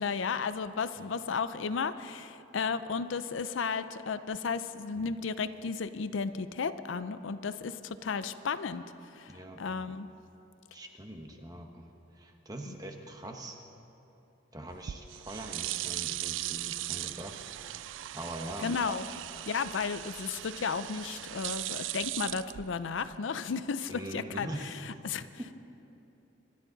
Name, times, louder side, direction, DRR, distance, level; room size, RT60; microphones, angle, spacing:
voice 1, 0.0-8.8 9.2-10.1 12.7-12.8 18.6-19.1 19.5-25.3, left 5 dB, 80° left, 13 dB, 0.5 m, -34 dB
voice 2, 9.3-9.9 10.7-13.6 14.5-17.4 18.1-18.8 23.9-24.8 25.4-25.5, right 1 dB, 20° right, 3 dB, 1.1 m, -43 dB
sound 1, 14.7-23.2, right 15 dB, 80° right, 0.3 m, -38 dB
25.5 x 11.5 x 4.0 m, 2.9 s
head